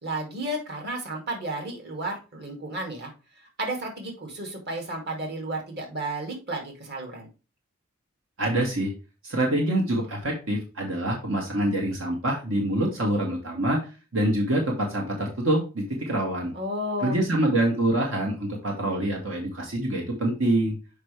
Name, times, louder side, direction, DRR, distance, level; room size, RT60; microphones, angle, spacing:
voice 1, 0.0-3.1 3.6-7.3 16.5-17.2, right 1 dB, 55° right, 1 dB, 2.4 m, -32 dB
voice 2, 8.4-8.9 9.2-13.8 14.1-16.5 17.0-20.8, right 1 dB, 80° right, -1 dB, 1.9 m, -25 dB
6.6 x 5.3 x 3.3 m, 0.31 s
head